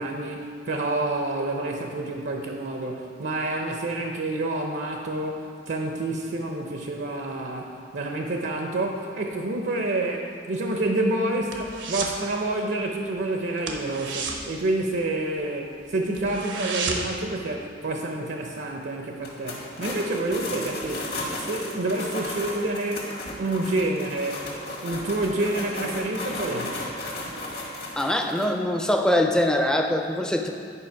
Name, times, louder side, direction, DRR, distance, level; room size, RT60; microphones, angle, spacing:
voice 1, 0.0-21.1 21.3-23.1 23.4-24.4 24.8-26.8, right 2 dB, 65° right, 1 dB, 0.7 m, -28 dB
sound 1, 10.6-12.2 12.5-12.8 13.1-13.2 13.6-15.5 15.8-15.9 16.1-17.3 17.6-17.7, right 4 dB, 85° right, 1.0 m, -32 dB
sound 2, 19.2-28.5, left 1 dB, 60° left, 1.7 m, -34 dB
voice 2, 28.0-30.5, left 1 dB, 5° left, 3 dB, 0.5 m, -23 dB
9.9 x 5.5 x 4.6 m, 2.2 s
head